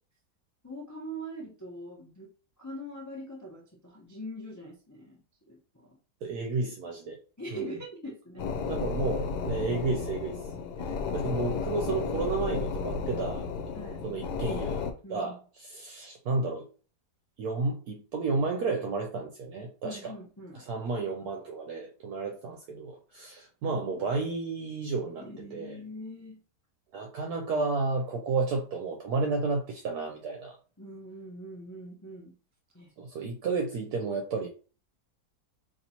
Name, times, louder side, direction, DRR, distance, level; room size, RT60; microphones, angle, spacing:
voice 1, 0.6-2.3 2.6-5.2 5.5-6.0 7.4-8.5 10.8-11.0 11.5-11.6 13.7-14.0 15.0-15.3 19.8-20.6 25.2-26.4 30.8-32.3 32.7-32.9, equal, 20° left, -3 dB, 0.4 m, -42 dB
voice 2, 6.2-7.2 7.5-7.8 8.7-10.4 11.1-13.5 14.0-14.8 15.1-16.7 17.4-20.1 20.5-25.2 25.5-25.8 26.9-30.6 33.0-34.5, right 3 dB, 70° right, 2 dB, 1.1 m, -32 dB
sound 1, 8.4-14.9, left 5 dB, 80° left, 1.2 m, -33 dB
2.9 x 2.8 x 4.2 m, 0.36 s
omnidirectional pair, 1.8 m